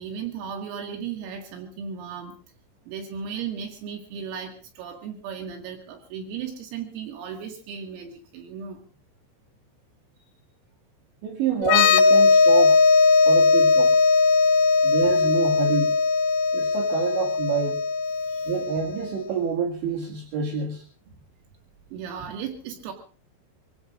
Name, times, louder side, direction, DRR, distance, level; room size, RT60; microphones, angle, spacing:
voice 1, 0.0-2.3 2.9-8.8 18.3-18.5 21.9-22.9, right 7 dB, 85° right, 2 dB, 4.6 m, -36 dB
voice 2, 11.2-12.8 13.3-13.9 14.8-15.9 16.5-17.8 18.5-20.8, right 6 dB, 65° right, 0 dB, 4.3 m, -27 dB
sound 1, 11.6-19.1, left 4 dB, 70° left, 2.5 m, -19 dB
27.0 x 16.5 x 2.5 m, 0.39 s
omnidirectional pair, 5.8 m